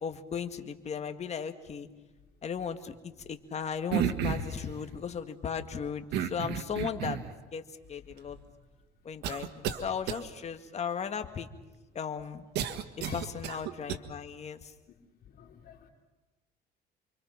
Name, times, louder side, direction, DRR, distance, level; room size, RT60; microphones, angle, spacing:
voice 1, 0.0-1.9 2.4-7.2 7.5-8.4 9.0-11.5 11.9-12.5 13.1-14.7, left 7 dB, 40° left, 8 dB, 2.0 m, -36 dB
sound 1, 3.9-4.6 6.1-7.3 8.1-8.2 9.2-9.8 10.1-10.2 12.5-14.0, right 9 dB, 80° right, 1.6 m, -32 dB
voice 2, 15.4-15.9, left 10 dB, 65° left, 3 dB, 3.5 m, -50 dB
29.0 x 24.0 x 5.9 m, 1.1 s
cardioid pair, 110°, 17 cm